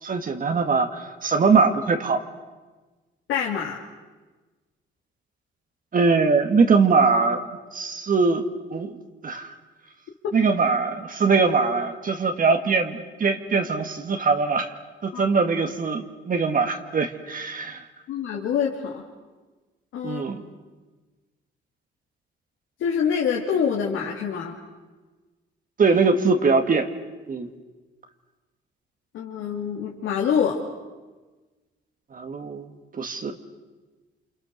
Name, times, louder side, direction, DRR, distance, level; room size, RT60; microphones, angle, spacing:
voice 1, 0.0-2.2 5.9-9.0 9.2-9.5 10.3-14.7 15.0-17.8 20.0-20.4 25.8-27.0 27.3-27.5 32.1-32.7 32.9-33.4, right 4 dB, 45° right, 6 dB, 2.1 m, -22 dB
voice 2, 3.3-3.8 15.1-15.2 18.1-19.0 19.9-20.2 22.8-24.6 29.1-30.6, left 7 dB, 85° left, -2 dB, 3.1 m, -25 dB
29.0 x 27.0 x 6.8 m, 1.2 s
cardioid pair, 90°, 20 cm